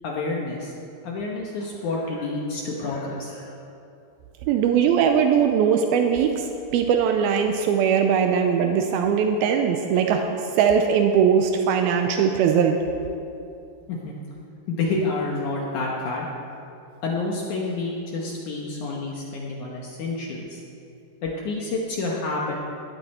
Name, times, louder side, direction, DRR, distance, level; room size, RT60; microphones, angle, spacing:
voice 1, 0.0-0.7 1.0-3.5 13.9-14.2 14.7-16.3 17.0-20.6 21.2-22.5, left 3 dB, 65° left, -2 dB, 2.2 m, -29 dB
voice 2, 4.5-6.5 6.7-10.3 10.6-12.8, right 7 dB, 85° right, 5 dB, 2.5 m, -20 dB
18.0 x 12.5 x 4.3 m, 2.7 s
omnidirectional pair, 4.5 m